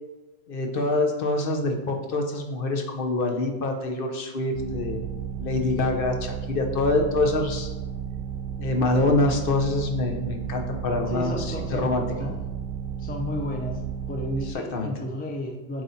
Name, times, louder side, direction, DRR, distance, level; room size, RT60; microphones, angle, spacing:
voice 1, 0.5-5.0 5.4-7.7 8.6-11.3 11.7-12.0 14.7-14.9, left 2 dB, 60° left, 3 dB, 0.9 m, -25 dB
sound 1, 4.5-14.5, right 8 dB, 75° right, 0.8 m, -33 dB
voice 2, 11.1-11.9 12.2-12.4 13.0-13.8 14.1-15.8, left 1 dB, 15° left, 2 dB, 0.4 m, -32 dB
7.9 x 3.1 x 4.0 m, 1.1 s
omnidirectional pair, 1.1 m